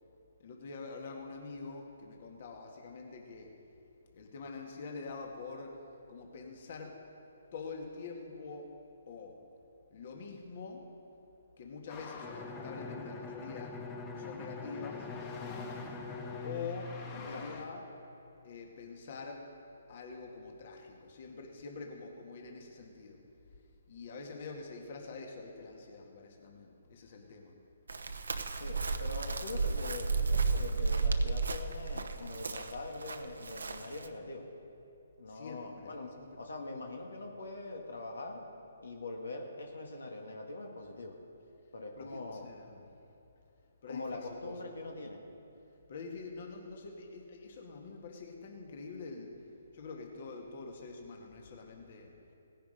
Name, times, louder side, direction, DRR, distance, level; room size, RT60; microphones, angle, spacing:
voice 1, 0.4-3.5 4.1-5.8 6.1-7.0 7.5-8.7 9.1-9.4 9.9-10.8 11.6-13.8 14.2-15.6 16.4-17.9 18.4-19.4 19.9-23.2 23.9-27.5 35.3-36.3 42.0-42.8 43.8-44.8 45.9-49.3 49.7-52.1, left 4 dB, 50° left, 2 dB, 1.8 m, -45 dB
sound 1, 11.9-17.7, left 4 dB, 30° left, 1.7 m, -50 dB
Bowed string instrument, 12.2-17.9, left 4 dB, 10° left, 0.9 m, -43 dB
Chirp tweet, 27.9-34.1, right 4 dB, 80° right, 0.9 m, -33 dB
voice 2, 28.4-34.5 35.2-36.1 36.4-38.5 38.8-41.2 41.7-42.5 43.9-45.2, left 2 dB, 85° left, 2 dB, 1.8 m, -43 dB
17.5 x 10.0 x 5.2 m, 2.8 s
hypercardioid pair, 145°, 0 cm